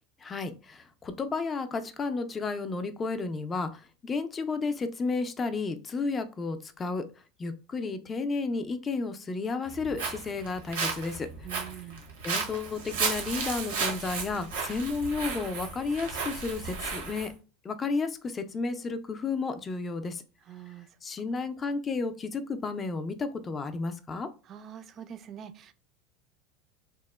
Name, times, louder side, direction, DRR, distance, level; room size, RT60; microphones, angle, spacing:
voice 1, 0.2-7.0 7.4-11.3 12.2-17.3 17.6-20.2 21.0-24.3, left 4 dB, 25° left, 9 dB, 0.4 m, -32 dB
Walk footsteps, 9.7-17.3, right 5 dB, 85° right, 0.7 m, -34 dB
voice 2, 11.4-12.0 20.5-20.9 24.5-25.7, right 9 dB, 40° right, 11 dB, 0.3 m, -44 dB
2.9 x 2.0 x 2.2 m, 0.34 s
hypercardioid pair, 95°, 0 cm